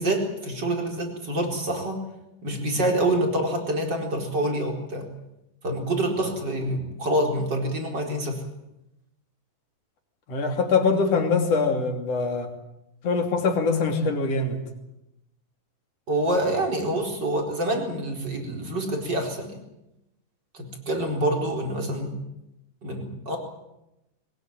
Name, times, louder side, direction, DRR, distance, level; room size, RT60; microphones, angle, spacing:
voice 1, 0.0-2.0 2.4-5.1 5.6-8.4 16.1-19.6 20.5-22.2 22.8-23.4, right 1 dB, 30° right, 2 dB, 4.8 m, -26 dB
voice 2, 10.3-12.5 13.0-14.6, left 4 dB, 50° left, 4 dB, 3.7 m, -23 dB
22.0 x 20.0 x 9.0 m, 0.89 s
omnidirectional pair, 3.9 m